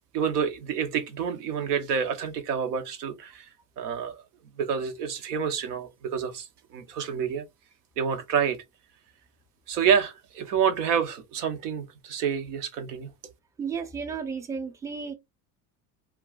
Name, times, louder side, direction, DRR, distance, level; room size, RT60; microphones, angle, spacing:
voice 1, 0.1-3.5 3.8-4.2 4.6-7.4 8.0-8.6 9.7-13.1, right 7 dB, 75° right, 0.8 m, -28 dB
voice 2, 13.6-15.1, right 6 dB, 5° right, 0.5 m, -33 dB
2.3 x 2.2 x 3.8 m
hypercardioid pair, 80°, 47 cm